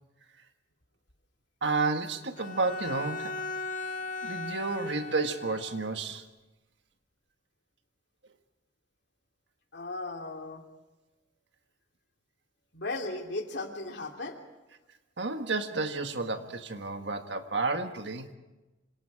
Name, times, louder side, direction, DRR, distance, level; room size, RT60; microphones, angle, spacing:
voice 1, 1.6-3.4 4.2-6.3 15.2-18.3, right 3 dB, 65° right, 7 dB, 1.7 m, -31 dB
Bowed string instrument, 2.4-5.9, left 4 dB, 45° left, 2.1 m, -37 dB
voice 2, 9.7-10.6 12.7-14.4, left 2 dB, 65° left, 2 dB, 3.1 m, -36 dB
26.5 x 26.5 x 4.9 m, 1.1 s
head